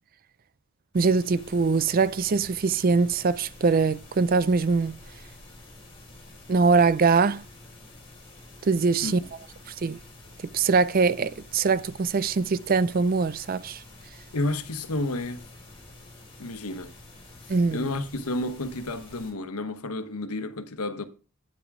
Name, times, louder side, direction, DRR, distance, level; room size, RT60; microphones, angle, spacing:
sound 1, 0.9-19.3, left 2 dB, 25° left, 3.5 m, -48 dB
voice 1, 0.9-5.0 6.5-7.4 8.6-9.2 9.8-10.0 10.5-13.8 17.5-17.9, right 4 dB, 40° right, 0.4 m, -22 dB
voice 2, 14.3-15.4 16.4-16.9 17.7-21.1, left 2 dB, 85° left, 1.1 m, -31 dB
9.6 x 8.1 x 3.6 m
head